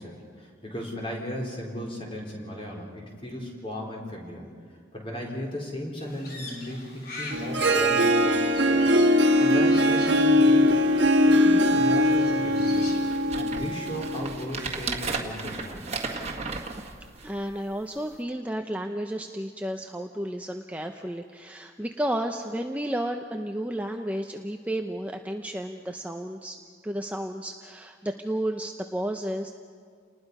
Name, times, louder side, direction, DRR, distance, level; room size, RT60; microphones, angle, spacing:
voice 1, 0.0-4.4 4.9-8.9 9.4-10.8 11.3-12.9 13.4-16.0, equal, 30° left, -1 dB, 4.2 m, -36 dB
Crow, 6.0-13.3, left 2 dB, 50° left, 3.3 m, -44 dB
Harp, 7.3-14.4, equal, 60° right, 1.5 m, -21 dB
sound 1, 10.0-10.2 10.7-10.8 11.0-11.5 12.1-12.2 12.7-17.5 18.1-18.2, right 4 dB, 35° right, 1.7 m, -35 dB
voice 2, 17.2-26.6 26.8-29.5, right 1 dB, 5° right, 4 dB, 0.6 m, -32 dB
29.5 x 20.0 x 5.5 m, 2.1 s
head